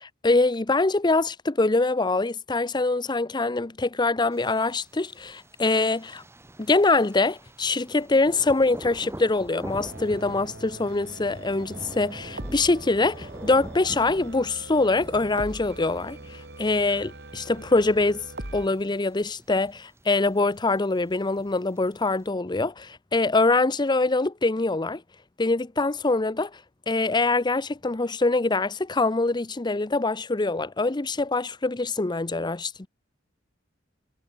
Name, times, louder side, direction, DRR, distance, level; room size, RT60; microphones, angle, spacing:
voice 1, 0.0-6.2 6.6-18.2 18.5-25.0 25.4-26.5 26.9-32.9, left 3 dB, 25° left, 0.7 m, -24 dB
Thunder, 4.3-22.3, right 1 dB, 15° right, 1.1 m, -45 dB
sound 1, 9.7-18.7, right 1 dB, 60° right, 6.5 m, -42 dB
head